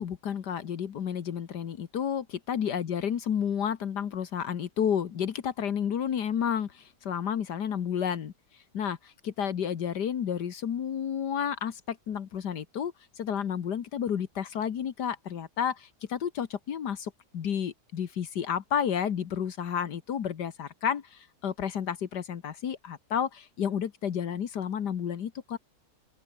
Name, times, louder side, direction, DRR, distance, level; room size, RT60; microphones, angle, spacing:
voice 1, 0.0-8.3 8.7-25.6, left 8 dB, 75° left, 1.9 m, -31 dB
open air
omnidirectional pair, 1.8 m